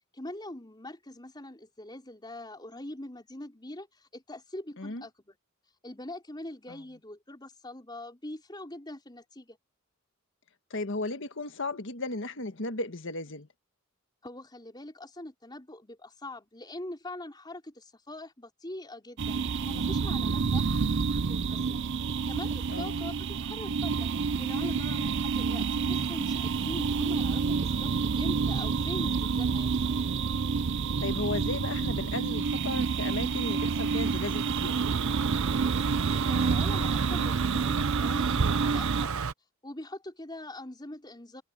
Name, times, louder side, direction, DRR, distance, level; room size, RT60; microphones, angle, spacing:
voice 1, 0.1-5.3 5.8-9.6 14.2-24.1 24.4-27.9 28.2-29.9 36.3-39.3 39.6-41.4, left 1 dB, 20° left, 4.9 m, -43 dB
voice 2, 10.7-13.5 20.3-21.0 22.7-23.0 31.0-34.8, left 2 dB, 60° left, 1.6 m, -35 dB
sound 1, 19.2-39.1, right 5 dB, 55° right, 0.5 m, -29 dB
Car passing by, 33.3-39.3, right 5 dB, 85° right, 0.8 m, -33 dB
head